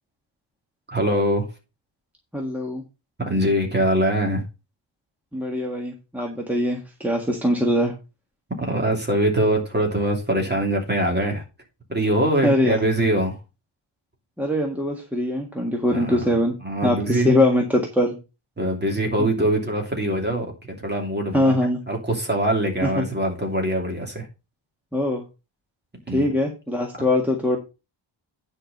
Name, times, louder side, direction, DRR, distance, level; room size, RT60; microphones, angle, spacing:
voice 1, 0.9-1.5 3.2-4.4 8.6-11.4 11.9-13.4 15.9-17.3 18.6-21.6 21.9-24.3 26.1-26.3, right 1 dB, 20° right, 2 dB, 2.9 m, -23 dB
voice 2, 2.3-2.8 5.3-7.9 12.4-12.8 14.4-16.5 16.8-18.2 21.3-21.8 22.8-23.0 24.9-25.2 26.1-27.6, left 1 dB, 5° right, 0 dB, 1.6 m, -22 dB
10.0 x 5.0 x 5.3 m, 0.28 s
wide cardioid pair, 155°, 49 cm